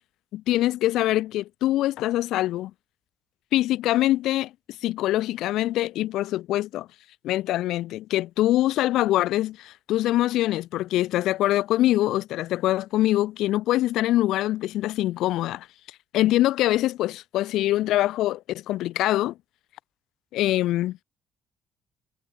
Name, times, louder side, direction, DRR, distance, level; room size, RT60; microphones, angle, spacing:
voice 1, 0.3-2.7 3.5-4.5 4.8-6.9 7.2-15.7 16.1-19.3 20.3-21.0, left 15 dB, 70° left, 1.0 m, -24 dB
cardioid pair, 175°, 0 cm